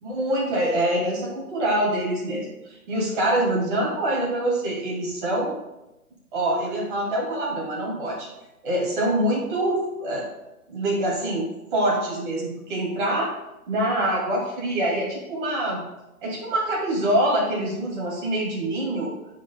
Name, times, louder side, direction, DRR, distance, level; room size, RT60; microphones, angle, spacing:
voice 1, 0.0-5.5 6.3-8.3 8.6-10.3 10.7-13.3 13.7-15.8 16.2-19.1, right 1 dB, 35° right, -4 dB, 2.4 m, -25 dB
9.9 x 5.0 x 2.3 m, 0.95 s
figure-of-eight pair, 135°, 44 cm